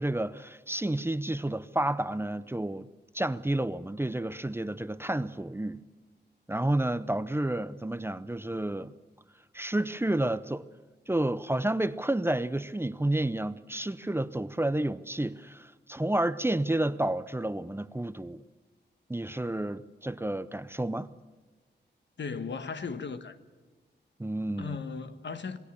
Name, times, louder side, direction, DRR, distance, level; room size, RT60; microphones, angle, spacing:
voice 1, 0.0-2.9 3.1-5.8 6.5-8.9 9.5-10.6 11.1-18.4 19.1-21.1 24.2-24.8, right 1 dB, 15° right, 0.7 m, -30 dB
voice 2, 22.2-23.4 24.6-25.6, left 5 dB, 80° left, 1.5 m, -36 dB
27.0 x 20.5 x 6.9 m
wide cardioid pair, 125°, 18 cm